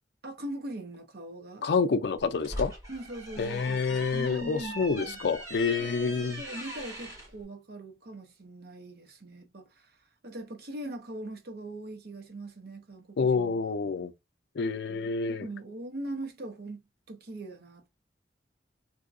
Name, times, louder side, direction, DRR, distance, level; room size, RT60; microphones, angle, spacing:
voice 1, 0.2-1.7 2.9-5.2 5.8-9.9 10.2-13.6 14.9-17.9, right 1 dB, 65° right, 0.9 m, -41 dB
voice 2, 1.6-2.7 3.4-6.4 13.2-14.1 14.6-15.5, left 5 dB, 70° left, 0.4 m, -28 dB
sound 1, 2.2-7.3, right 1 dB, 20° right, 2.0 m, -41 dB
3.6 x 2.7 x 2.5 m
head